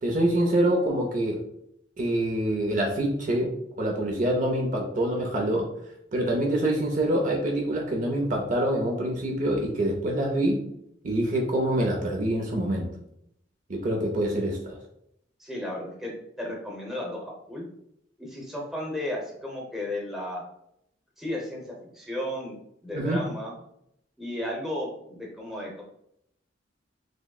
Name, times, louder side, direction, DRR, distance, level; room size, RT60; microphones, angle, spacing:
voice 1, 0.0-1.4 2.0-3.5 3.8-5.7 6.1-10.6 11.0-12.9 13.7-14.8 22.9-23.2, right 1 dB, 40° right, -1 dB, 0.6 m, -25 dB
voice 2, 15.4-16.1 16.4-17.7 18.2-20.4 21.2-22.6 22.8-23.5 24.2-25.8, left 1 dB, ahead, -3 dB, 0.8 m, -34 dB
6.2 x 2.1 x 2.3 m, 0.76 s
head